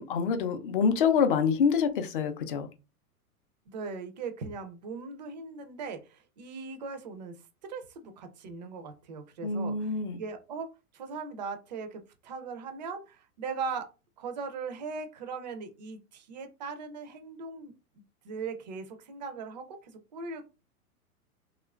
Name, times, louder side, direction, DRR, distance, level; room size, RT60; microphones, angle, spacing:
voice 1, 0.0-2.7 9.4-10.2, left 6 dB, 40° left, 0.4 m, -26 dB
voice 2, 3.7-7.4 7.6-10.7 10.9-13.9 14.2-17.7 18.2-20.5, right 4 dB, 30° right, 0.4 m, -39 dB
2.8 x 2.4 x 2.2 m
figure-of-eight pair, 105°, 45 cm